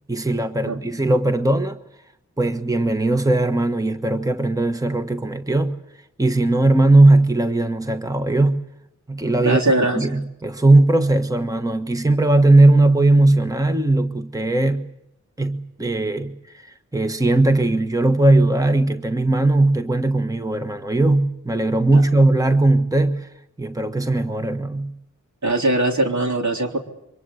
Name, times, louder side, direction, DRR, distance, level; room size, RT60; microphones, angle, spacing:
voice 1, 0.1-1.8 2.4-5.8 6.2-8.6 9.1-9.6 9.9-14.9 15.4-23.3 23.6-24.9, right 2 dB, 10° right, 1.3 m, -18 dB
voice 2, 9.4-10.2 21.9-22.0 25.4-26.8, right 2 dB, 65° right, 3.5 m, -21 dB
24.0 x 20.5 x 8.3 m
cardioid pair, 40°, 31 cm